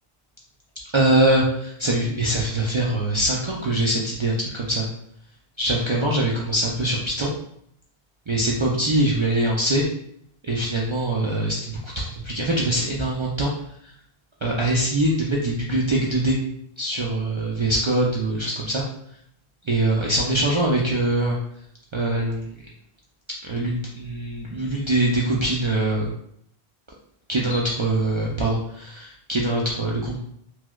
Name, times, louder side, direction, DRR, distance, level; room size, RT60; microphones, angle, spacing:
voice 1, 0.9-4.8 5.6-7.3 8.3-9.8 10.4-13.5 14.4-16.4 16.8-18.8 19.7-21.4 21.9-22.5 23.5-26.1 27.3-30.2, right 1 dB, 55° right, -4 dB, 0.3 m, -23 dB
4.5 x 2.0 x 2.3 m, 0.69 s
omnidirectional pair, 1.0 m